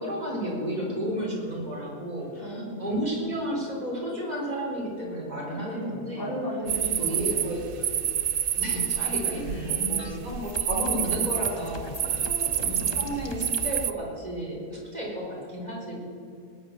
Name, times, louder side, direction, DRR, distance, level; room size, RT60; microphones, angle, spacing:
voice 1, 0.0-6.3 7.0-7.9 8.5-12.3 12.5-16.0, equal, 25° right, -3 dB, 4.3 m, -32 dB
voice 2, 0.6-1.1 2.3-2.8 5.5-7.5 9.3-9.9 10.7-11.1 12.0-13.0, left 1 dB, 15° left, -7 dB, 4.0 m, -36 dB
sound 1, 6.7-13.9, right 9 dB, 85° right, 0.5 m, -28 dB
sound 2, 9.5-13.8, left 3 dB, 30° left, 0.5 m, -42 dB
20.0 x 10.0 x 6.7 m, 2.7 s
omnidirectional pair, 1.7 m